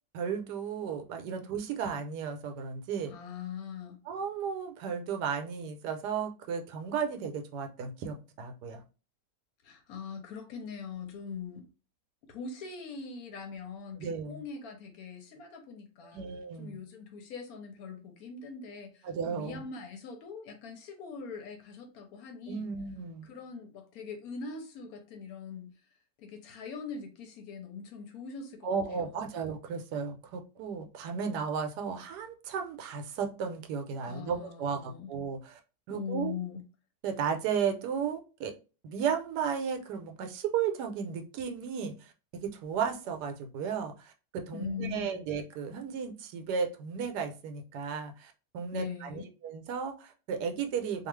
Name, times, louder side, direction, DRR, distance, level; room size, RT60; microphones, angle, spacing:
voice 1, 0.1-3.1 4.1-8.8 14.0-14.4 16.1-16.8 19.0-19.6 22.5-23.3 28.6-35.6 35.9-36.4 37.0-38.5 38.8-51.1, right 6 dB, 80° right, 1.1 m, -34 dB
voice 2, 3.1-4.0 9.6-11.7 12.3-16.3 16.6-22.7 23.2-25.8 26.2-29.3 34.1-35.1 35.9-36.6 44.5-45.2 48.7-49.3, left 5 dB, 70° left, 0.9 m, -42 dB
2.7 x 2.3 x 3.1 m
omnidirectional pair, 1.8 m